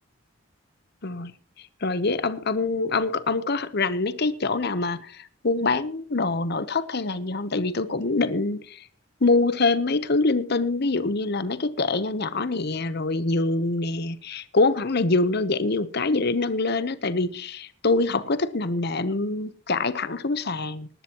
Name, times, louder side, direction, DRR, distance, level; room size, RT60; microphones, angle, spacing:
voice 1, 1.0-1.3 1.6-8.9 9.2-20.9, left 3 dB, 50° left, 0.9 m, -25 dB
19.0 x 12.5 x 3.0 m
head